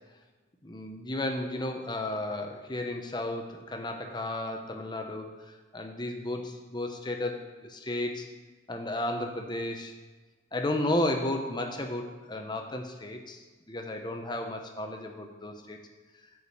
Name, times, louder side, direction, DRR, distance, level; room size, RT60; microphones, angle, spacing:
voice 1, 0.6-5.3 5.7-8.3 8.7-9.9 10.5-15.8, left 1 dB, 25° left, 4 dB, 0.9 m, -33 dB
8.3 x 5.0 x 7.2 m, 1.3 s
head